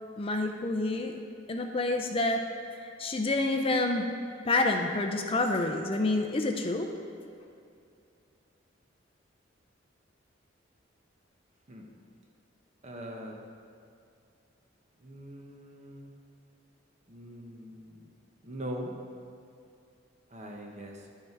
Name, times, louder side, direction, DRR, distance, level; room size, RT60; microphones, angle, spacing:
voice 1, 0.2-1.2 1.5-2.4 2.8-4.1 4.4-6.9, left 2 dB, 30° left, 4 dB, 0.5 m, -28 dB
voice 2, 12.8-13.4 15.0-16.1 17.1-18.0 18.4-18.9 20.3-21.1, equal, 35° right, 1 dB, 0.9 m, -42 dB
10.5 x 5.7 x 4.6 m, 2.4 s
head